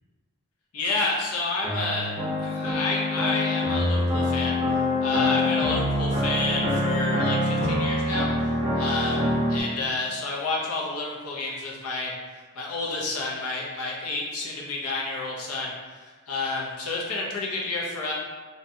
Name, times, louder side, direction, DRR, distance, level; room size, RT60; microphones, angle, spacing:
voice 1, 0.7-2.1 2.4-4.6 5.0-8.3 8.8-12.1 12.6-18.1, left 3 dB, 85° left, -3 dB, 0.6 m, -30 dB
sound 1, 1.6-9.6, left 1 dB, 20° right, 0.5 m, -25 dB
2.7 x 2.2 x 2.6 m, 1.4 s
head